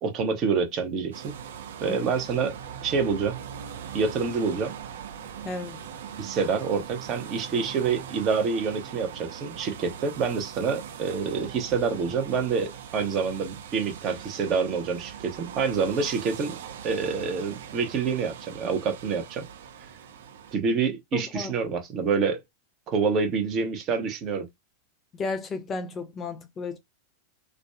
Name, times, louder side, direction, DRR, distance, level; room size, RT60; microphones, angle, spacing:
voice 1, 0.0-1.3 1.8-2.5 2.8-3.4 3.9-4.7 6.2-16.6 16.8-19.5 20.5-22.4 22.9-24.5, right 5 dB, 35° right, 0.8 m, -27 dB
sound 1, 1.1-20.5, right 8 dB, 65° right, 0.7 m, -41 dB
voice 2, 5.4-5.8 21.1-21.5 25.1-26.8, left 4 dB, 25° left, 0.4 m, -33 dB
2.5 x 2.2 x 2.2 m
figure-of-eight pair, 90°, 0 cm